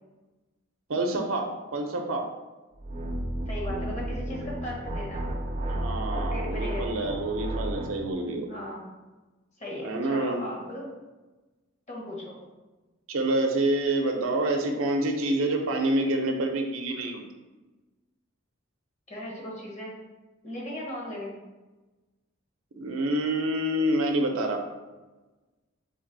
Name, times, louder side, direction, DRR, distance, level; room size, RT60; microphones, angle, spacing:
voice 1, 0.9-2.3 5.7-8.5 9.8-10.4 13.1-17.2 22.8-24.6, right 1 dB, 75° right, 3 dB, 0.6 m, -27 dB
sound 1, 2.8-8.0, right 1 dB, 35° right, 0.6 m, -32 dB
voice 2, 3.5-5.3 6.1-6.8 8.5-8.9 9.6-10.9 11.9-12.3 19.1-19.9 20.4-21.4, left 1 dB, 35° left, -2 dB, 1.1 m, -37 dB
3.9 x 3.4 x 3.9 m, 1.2 s
head